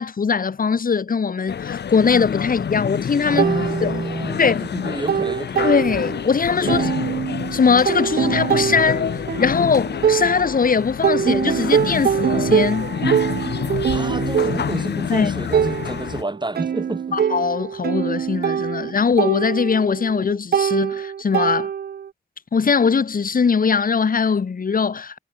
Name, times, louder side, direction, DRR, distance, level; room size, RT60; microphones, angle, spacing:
voice 1, 0.0-3.4 3.8-3.9 4.4-4.6 5.6-6.9 7.5-12.9 15.1-15.3 17.1-21.7 22.5-25.2, left 5 dB, 55° left, 1.5 m, -20 dB
sound 1, 1.5-16.2, left 8 dB, 80° left, 3.1 m, -28 dB
voice 2, 3.3-5.7 6.6-6.9 13.9-17.2, right 2 dB, 25° right, 6.5 m, -29 dB
sound 2, 3.4-4.5 4.8-6.3 6.7-10.7 11.0-22.1, right 8 dB, 65° right, 0.6 m, -23 dB
cardioid pair, 45°, 17 cm